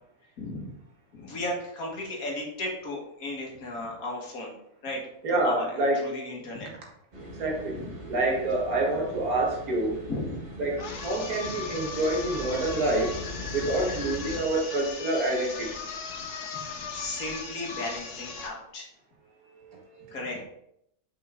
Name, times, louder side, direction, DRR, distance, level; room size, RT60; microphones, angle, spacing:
voice 1, 0.4-0.7 1.1-4.5 4.8-5.0 5.3-6.7 7.7-7.9 10.1-10.4 11.5-11.7 16.2-18.9 20.1-20.4, left 1 dB, 70° left, -1 dB, 2.0 m, -35 dB
voice 2, 5.2-6.0 7.4-7.7 8.1-10.0 10.6-10.8 11.0-13.1 13.5-15.7, right 2 dB, 75° right, -1 dB, 2.0 m, -27 dB
sound 1, 7.1-14.4, left 1 dB, 35° right, 1.9 m, -41 dB
sound 2, 10.8-18.6, left 4 dB, 90° left, 1.5 m, -38 dB
5.7 x 5.4 x 3.6 m, 0.75 s
omnidirectional pair, 1.6 m